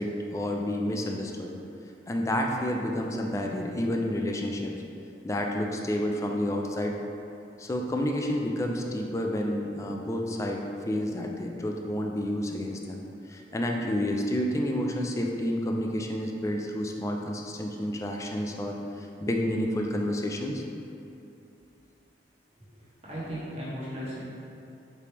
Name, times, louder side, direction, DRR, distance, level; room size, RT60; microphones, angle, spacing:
voice 1, 0.0-1.5 2.1-4.7 5.2-7.0 7.6-13.0 13.3-18.8 19.2-20.6, left 1 dB, 15° left, 1 dB, 0.3 m, -29 dB
voice 2, 23.0-24.2, equal, 35° right, -10 dB, 1.4 m, -36 dB
4.9 x 3.4 x 2.9 m, 2.8 s
head